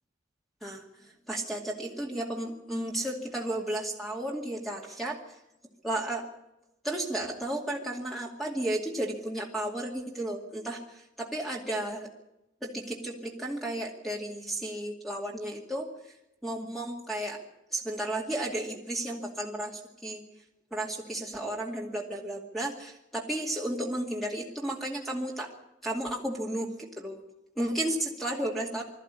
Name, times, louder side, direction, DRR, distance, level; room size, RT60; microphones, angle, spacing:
voice 1, 0.6-5.2 5.8-6.3 6.8-10.8 11.2-12.1 12.6-15.9 16.4-17.4 17.7-20.2 20.7-25.5 25.8-27.2 27.6-28.8, right 1 dB, ahead, -1 dB, 2.4 m, -33 dB
21.0 x 13.5 x 9.7 m, 0.90 s
head